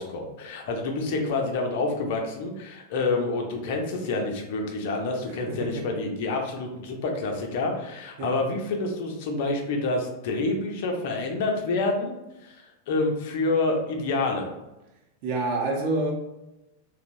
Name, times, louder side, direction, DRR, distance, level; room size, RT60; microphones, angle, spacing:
voice 1, 0.0-12.2 12.4-14.5, left 3 dB, 50° left, 2 dB, 0.5 m, -28 dB
voice 2, 5.3-5.8 8.2-8.3 15.2-16.1, right 2 dB, 45° right, 0 dB, 0.6 m, -28 dB
2.8 x 2.0 x 2.6 m, 0.95 s
figure-of-eight pair, 90°, 0 cm